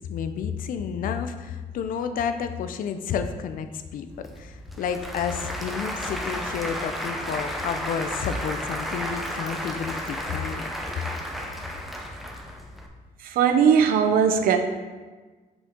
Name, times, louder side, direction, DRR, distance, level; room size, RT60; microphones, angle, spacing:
voice 1, 0.1-10.7, left 7 dB, 75° left, 8 dB, 0.5 m, -30 dB
Applause / Crowd, 4.1-12.9, equal, ahead, 0.6 m, -33 dB
voice 2, 13.2-14.6, right 7 dB, 90° right, 8 dB, 0.6 m, -19 dB
6.6 x 5.2 x 3.7 m, 1.3 s
cardioid pair, 140°, 15 cm